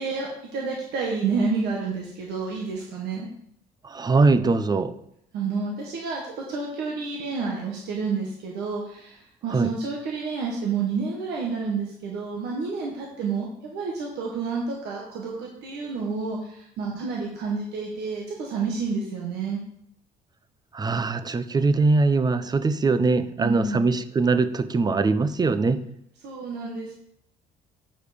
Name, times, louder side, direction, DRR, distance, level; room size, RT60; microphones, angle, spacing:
voice 1, 0.0-3.3 5.3-19.6 23.4-23.9 26.2-26.9, right 4 dB, 85° right, -2 dB, 1.5 m, -29 dB
voice 2, 3.8-4.9 9.5-9.7 20.7-25.8, right 3 dB, 25° right, 12 dB, 0.6 m, -22 dB
8.6 x 4.9 x 5.1 m, 0.73 s
cardioid pair, 110°, 17 cm